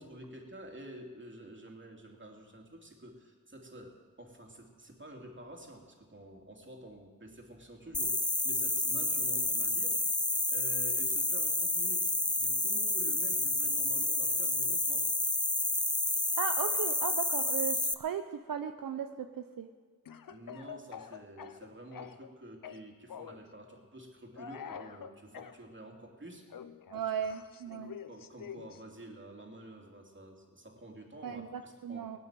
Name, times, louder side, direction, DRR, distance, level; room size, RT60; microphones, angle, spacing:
voice 1, 0.0-10.0 10.5-15.1 20.3-26.5 26.9-27.0 27.6-32.1, right 1 dB, 35° right, 1 dB, 3.0 m, -49 dB
sound 1, 7.9-17.9, left 2 dB, 10° left, 0.7 m, -30 dB
voice 2, 16.4-18.2 18.5-19.7 26.9-28.0 31.2-32.2, right 8 dB, 75° right, 8 dB, 0.7 m, -36 dB
Speech / Cough, 20.1-22.3 22.6-23.4 24.3-25.6 26.5-28.8, left 8 dB, 75° left, 0.8 m, -46 dB
18.0 x 9.3 x 7.6 m, 1.5 s
cardioid pair, 50°, 34 cm